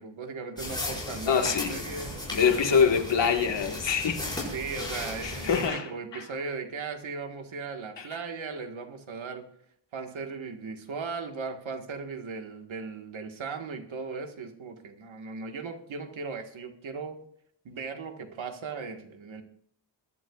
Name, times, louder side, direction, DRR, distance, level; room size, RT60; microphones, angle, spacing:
voice 1, 0.0-2.2 2.6-2.8 4.5-9.4 9.9-17.2 17.6-19.4, right 4 dB, 85° right, 5 dB, 1.7 m, -37 dB
sound 1, 0.6-5.7, left 1 dB, 10° left, 5.5 m, -36 dB
voice 2, 1.3-1.7 2.3-4.4 5.2-6.2 8.0-8.1, left 6 dB, 65° left, 4 dB, 1.7 m, -25 dB
22.5 x 11.0 x 2.4 m, 0.67 s
wide cardioid pair, 160°, 46 cm